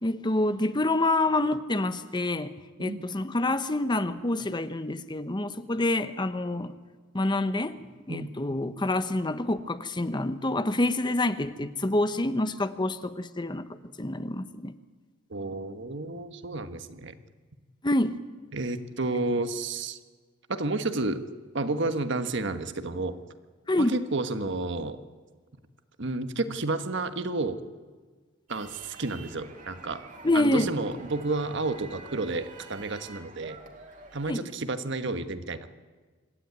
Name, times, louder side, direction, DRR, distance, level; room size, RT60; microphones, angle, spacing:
voice 1, 0.0-6.7 7.1-7.8 8.1-14.7 17.8-18.2 23.7-23.9 30.2-30.7 34.3-34.4, left 2 dB, 20° left, 0.9 m, -27 dB
voice 2, 15.3-17.2 18.5-20.0 20.5-21.2 21.5-23.2 23.8-25.0 26.0-27.6 28.5-30.0 30.3-33.6 34.1-35.7, right 2 dB, 60° right, 1.4 m, -31 dB
sound 1, 28.5-34.4, right 3 dB, 40° right, 2.4 m, -48 dB
26.0 x 12.5 x 9.5 m
head